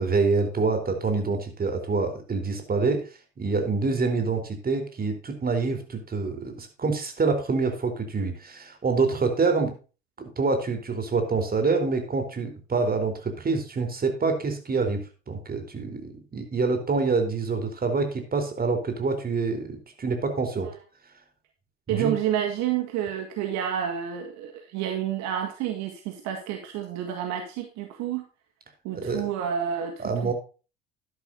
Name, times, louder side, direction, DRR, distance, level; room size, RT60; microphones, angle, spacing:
voice 1, 0.0-3.0 3.4-9.7 10.2-20.7 21.9-22.1 28.9-29.3 30.0-30.3, right 4 dB, 30° right, 6 dB, 4.0 m, -26 dB
voice 2, 21.9-28.3 28.8-29.9 30.2-30.3, right 9 dB, 55° right, 5 dB, 1.8 m, -29 dB
12.5 x 11.0 x 2.7 m, 0.34 s
figure-of-eight pair, 65°, 31 cm